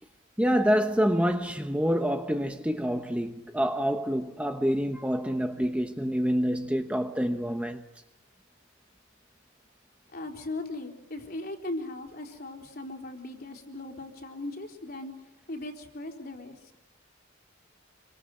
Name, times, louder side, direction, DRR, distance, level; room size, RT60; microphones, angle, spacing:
voice 1, 0.4-7.8, equal, 5° right, 1.2 m, -27 dB
voice 2, 10.1-15.1 15.5-16.6, left 2 dB, 45° left, 4.1 m, -38 dB
27.5 x 25.0 x 7.9 m
head